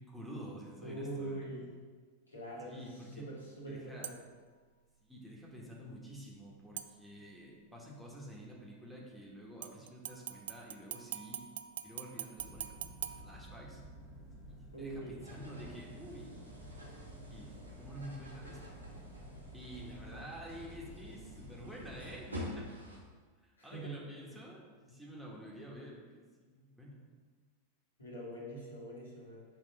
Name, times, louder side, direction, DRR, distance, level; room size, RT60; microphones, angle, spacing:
voice 1, 0.0-1.5 2.6-3.3 3.7-4.1 5.0-11.4 11.8-13.8 14.8-16.5 17.2-18.8 19.5-22.7 23.4-27.1, equal, ahead, -4 dB, 1.4 m, -49 dB
voice 2, 0.8-1.7 2.3-4.1 14.7-15.2 23.6-24.0 24.3-24.4 28.0-29.4, right 1 dB, 75° left, -5 dB, 2.0 m, -43 dB
sound 1, 4.0-4.5 6.8-7.5 9.6-14.0 14.4-14.5, right 10 dB, 60° right, 0.3 m, -45 dB
sound 2, 12.4-22.2, equal, 25° left, 1.3 m, -53 dB
sound 3, 15.2-23.0, left 1 dB, 85° right, 1.5 m, -49 dB
7.5 x 3.6 x 5.2 m, 1.5 s
figure-of-eight pair, 90°, 0 cm